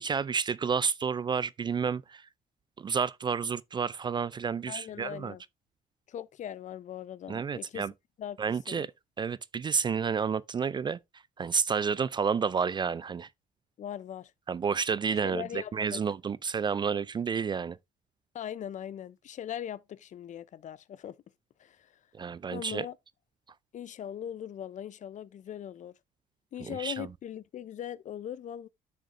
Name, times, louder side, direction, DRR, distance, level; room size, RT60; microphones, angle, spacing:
voice 1, 0.0-2.2 2.8-5.3 7.3-7.9 8.4-8.9 9.2-11.0 11.4-13.3 14.5-17.8 22.1-22.9 26.6-27.1, right 6 dB, 25° right, 0.3 m, -30 dB
voice 2, 4.7-5.4 6.1-7.9 8.2-8.4 8.7-8.9 13.8-14.3 15.2-16.0 18.3-21.2 21.6-21.9 22.5-23.0 23.7-25.9 26.5-28.7, left 10 dB, 45° left, 0.6 m, -40 dB
10.0 x 6.5 x 2.5 m
cardioid pair, 110°, 17 cm